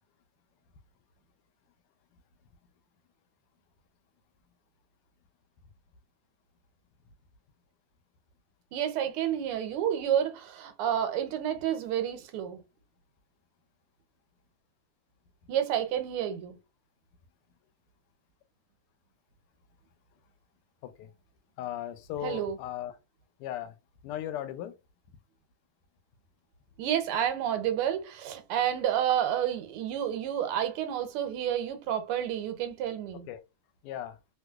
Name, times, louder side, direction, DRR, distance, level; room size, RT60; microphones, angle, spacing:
voice 1, 8.7-12.6 15.5-16.6 22.2-22.6 26.8-33.3, right 10 dB, 85° right, 1.6 m, -30 dB
voice 2, 21.6-23.0 23.4-23.8 24.0-24.8 33.1-33.4 33.8-34.2, left 11 dB, 85° left, 1.5 m, -37 dB
3.2 x 3.0 x 2.3 m
omnidirectional pair, 2.4 m